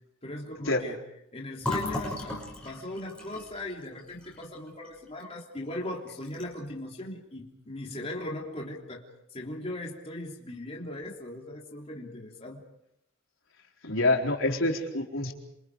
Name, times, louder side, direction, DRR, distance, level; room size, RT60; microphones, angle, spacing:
voice 1, 0.2-1.0 1.3-9.0 9.3-12.6, left 1 dB, 30° left, -1 dB, 3.4 m, -38 dB
Fill (with liquid), 1.6-5.3 5.6-5.8 6.1-6.7, left 2 dB, 5° left, 6.2 m, -36 dB
voice 2, 13.8-15.3, left 2 dB, 75° left, 1 dB, 4.2 m, -26 dB
28.0 x 27.0 x 4.9 m, 0.83 s
head